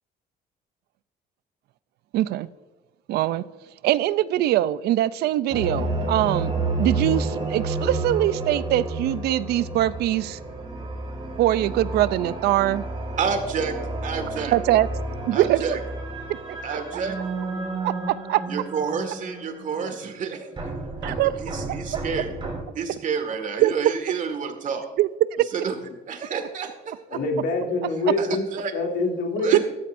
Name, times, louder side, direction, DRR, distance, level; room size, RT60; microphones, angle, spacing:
voice 1, 2.1-2.5 3.1-3.4 3.8-6.5 6.8-10.4 11.4-12.9 14.5-14.9 15.3-15.6 16.5-17.0 17.8-18.4 21.0-21.4 21.7-21.8 23.6-23.7 25.0-25.1 29.5-29.6, right 14 dB, 75° right, 17 dB, 0.5 m, -22 dB
sound 1, 5.5-20.3 20.6-22.6, right 2 dB, 30° right, 3.7 m, -31 dB
voice 2, 13.2-13.8 14.0-14.5 15.3-15.8 16.6-17.2 18.5-20.6 21.0-22.3 22.8-24.9 25.5-25.8 26.1-27.2 28.2-28.7 29.4-29.6, right 6 dB, 50° right, 6 dB, 1.9 m, -29 dB
voice 3, 27.1-28.4 28.7-29.6, left 3 dB, 80° left, 1 dB, 2.7 m, -25 dB
14.5 x 14.0 x 2.6 m, 1.2 s
cardioid pair, 110°, 17 cm